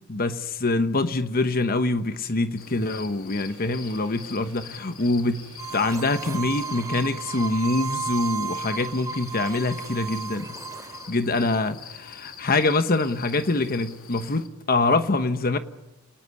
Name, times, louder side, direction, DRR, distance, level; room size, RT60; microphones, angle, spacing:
voice 1, 0.1-5.4 5.7-10.5 11.1-15.6, left 2 dB, 45° left, 10 dB, 1.1 m, -25 dB
sound 1, 2.6-14.5, left 7 dB, 80° left, 2.4 m, -45 dB
sound 2, 3.5-10.4, right 3 dB, 60° right, 5.5 m, -50 dB
sound 3, 5.6-11.1, right 5 dB, 15° right, 3.1 m, -34 dB
29.5 x 19.5 x 9.6 m, 1.0 s
head